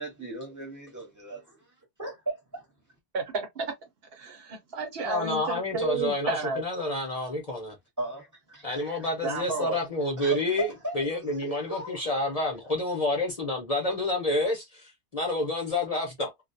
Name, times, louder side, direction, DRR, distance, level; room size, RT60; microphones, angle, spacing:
voice 1, 0.0-2.7 8.0-9.6 10.2-12.3, right 2 dB, 20° right, 1.1 m, -38 dB
voice 2, 3.1-3.7 4.1-6.6 9.2-9.8, right 4 dB, 70° right, 1.0 m, -31 dB
voice 3, 5.0-7.8 8.6-10.7 10.9-16.3, left 2 dB, 40° left, 0.7 m, -29 dB
2.3 x 2.2 x 2.5 m
omnidirectional pair, 1.1 m